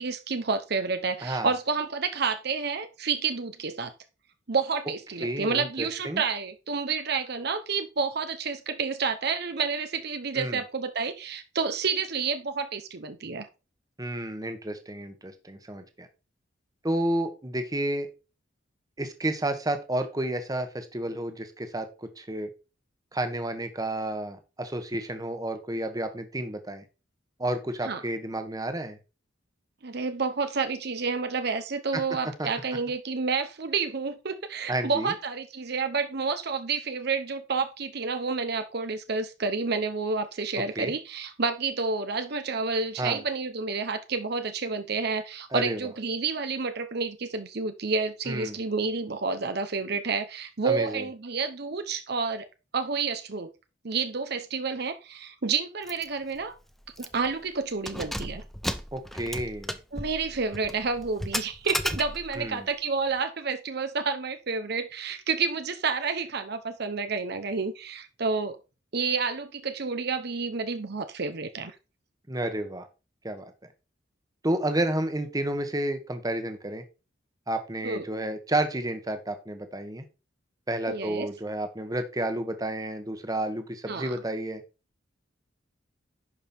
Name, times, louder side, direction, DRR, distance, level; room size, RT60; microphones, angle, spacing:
voice 1, 0.0-3.9 4.5-13.5 27.8-28.0 29.8-52.4 52.7-53.5 53.8-56.5 57.0-58.4 59.9-68.6 68.9-71.7 77.8-78.0 80.9-81.3 83.9-84.2, right 4 dB, 55° right, 9 dB, 0.8 m, -29 dB
voice 2, 5.2-6.2 10.3-10.6 14.0-16.1 16.8-18.1 19.0-22.5 23.1-26.8 27.4-29.0 31.9-32.0 32.4-32.5 34.7-35.1 40.8-40.9 43.0-43.2 45.5-45.9 48.3-48.6 50.6-51.0 58.9-59.8 62.4-62.7 72.3-72.9 73.2-73.5 74.4-76.8 77.5-80.0 80.7-84.6, right 1 dB, 20° right, 7 dB, 1.3 m, -31 dB
Keys jangling, 55.9-56.1 56.4-56.5 57.0-57.3 57.7-62.5, equal, ahead, 0.6 m, -34 dB
11.0 x 5.5 x 4.4 m, 0.31 s
head